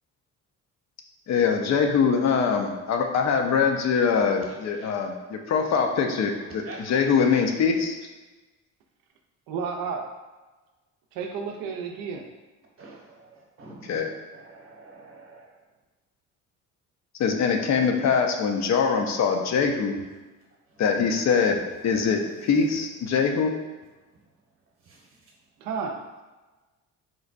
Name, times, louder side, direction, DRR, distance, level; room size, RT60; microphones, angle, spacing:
voice 1, 1.3-8.0 13.9-14.1 17.2-20.0 20.8-23.5, left 6 dB, 55° left, 3 dB, 0.5 m, -23 dB
voice 2, 4.0-4.4 4.7-4.9 5.5-6.0 6.3-6.8 12.8-15.6 19.9-20.0 20.7-20.8 22.3-22.6 23.0-23.2 24.8-25.1, right 3 dB, 40° right, -2 dB, 0.9 m, -48 dB
voice 3, 9.5-10.1 11.1-12.3 25.6-26.2, right 5 dB, 90° right, 3 dB, 0.5 m, -32 dB
3.8 x 2.1 x 2.4 m, 1.2 s
supercardioid pair, 80°, 34 cm